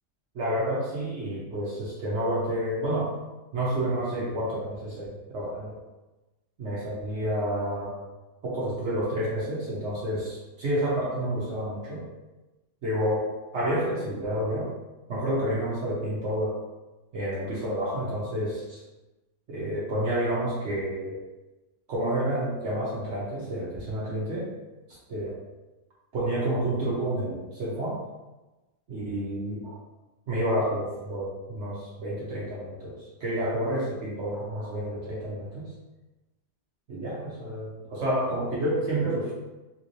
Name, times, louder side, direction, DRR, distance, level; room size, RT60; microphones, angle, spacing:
voice 1, 0.3-3.2 3.5-5.8 6.6-8.0 8.4-12.0 12.8-14.7 15.1-16.6 17.1-18.8 19.5-21.2 21.9-24.5 25.1-25.4 26.1-28.0 28.9-29.8 30.3-35.7 36.9-39.3, right 1 dB, 65° right, -7 dB, 1.1 m, -29 dB
3.3 x 3.1 x 2.6 m, 1.1 s
omnidirectional pair, 1.3 m